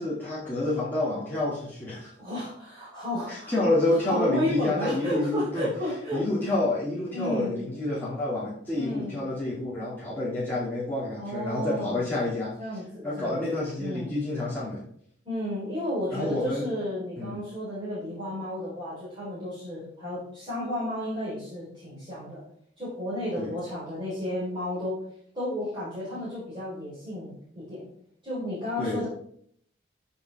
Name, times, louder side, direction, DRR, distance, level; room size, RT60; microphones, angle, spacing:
voice 1, 0.0-2.1 3.3-5.7 6.1-12.6 13.0-14.8 16.1-16.7 17.2-17.4 23.4-23.5 28.8-29.1, left 2 dB, 10° left, -9 dB, 2.4 m, -28 dB
voice 2, 2.2-3.6 3.9-6.5 7.1-7.6 8.7-9.2 11.1-12.1 12.6-14.1 15.2-22.4 22.8-25.0 25.3-27.9 28.2-29.1, left 1 dB, 25° right, -10 dB, 4.1 m, -33 dB
13.5 x 5.6 x 3.5 m, 0.62 s
head